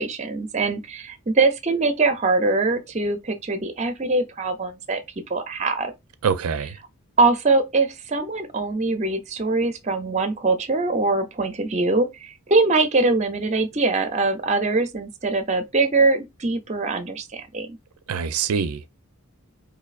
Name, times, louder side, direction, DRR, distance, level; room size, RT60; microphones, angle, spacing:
voice 1, 0.0-5.0 5.3-5.9 7.2-17.8, right 3 dB, 30° right, 0.5 m, -22 dB
voice 2, 6.2-6.8 18.1-18.9, right 6 dB, 85° right, 0.4 m, -24 dB
4.2 x 2.7 x 2.4 m
head